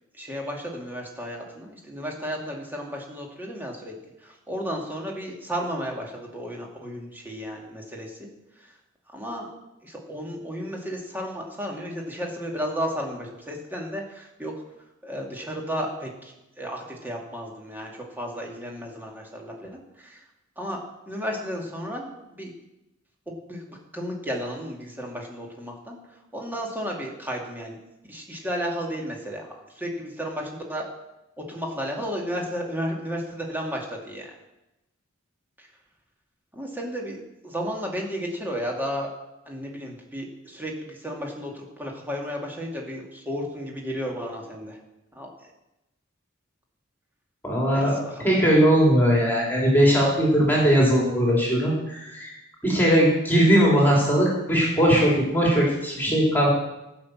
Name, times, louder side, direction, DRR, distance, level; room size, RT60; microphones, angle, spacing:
voice 1, 0.1-3.9 4.2-8.3 9.1-9.5 9.8-14.5 15.0-20.2 20.6-20.8 21.1-22.5 23.3-26.0 26.3-27.8 28.1-30.9 31.4-34.3 35.6-35.7 36.5-39.1 39.5-44.8 45.1-45.3 47.7-48.3, equal, 10° right, -1 dB, 2.2 m, -33 dB
voice 2, 47.4-47.9 48.2-52.3 52.6-56.5, equal, 10° left, -4 dB, 3.1 m, -20 dB
15.0 x 5.8 x 7.4 m, 0.94 s
head